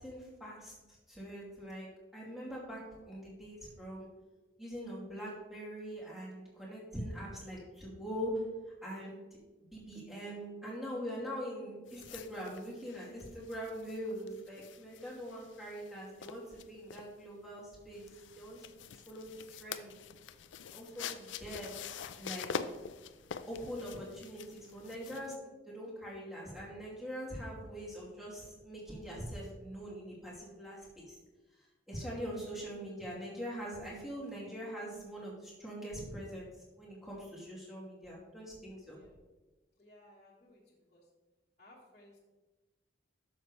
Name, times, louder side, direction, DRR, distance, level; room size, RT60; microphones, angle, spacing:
voice 1, 0.0-1.9 2.1-2.8 3.1-4.1 4.6-8.4 8.8-9.2 9.7-18.0 18.4-18.7 19.1-19.9 20.6-21.7 22.2-22.5 23.5-31.2 31.9-36.5 36.8-39.0, equal, ahead, -6 dB, 2.5 m, -43 dB
sound 1, 11.9-25.4, left 7 dB, 90° left, 0.5 m, -46 dB
voice 2, 39.8-40.6 40.9-41.0 41.6-42.2, left 1 dB, 40° left, -6 dB, 1.5 m, -59 dB
11.0 x 6.7 x 3.3 m, 1.2 s
head